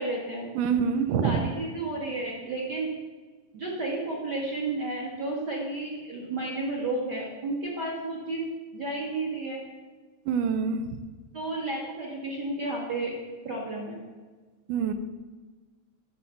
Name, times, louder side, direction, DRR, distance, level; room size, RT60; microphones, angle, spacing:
voice 1, 0.0-0.5 1.2-2.9 3.5-8.4 8.7-9.6 11.3-13.1 13.4-14.0, right 2 dB, 45° right, -3 dB, 1.5 m, -32 dB
voice 2, 0.6-1.4 10.3-10.9 14.7-14.9, right 6 dB, 80° right, 9 dB, 2.2 m, -25 dB
10.5 x 4.4 x 7.0 m, 1.4 s
omnidirectional pair, 3.7 m